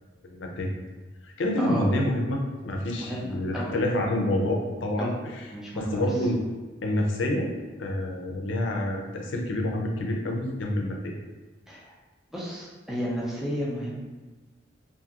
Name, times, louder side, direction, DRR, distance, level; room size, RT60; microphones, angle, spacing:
voice 1, 0.2-0.8 1.2-5.1 5.7-6.4 6.8-7.5 7.8-11.1, left 1 dB, 90° left, 1 dB, 0.5 m, -27 dB
voice 2, 1.6-1.9 3.0-3.7 5.0-5.1 5.5-6.1 11.7-11.9 12.3-14.0, equal, ahead, -6 dB, 0.5 m, -33 dB
2.8 x 2.6 x 2.4 m, 1.3 s
head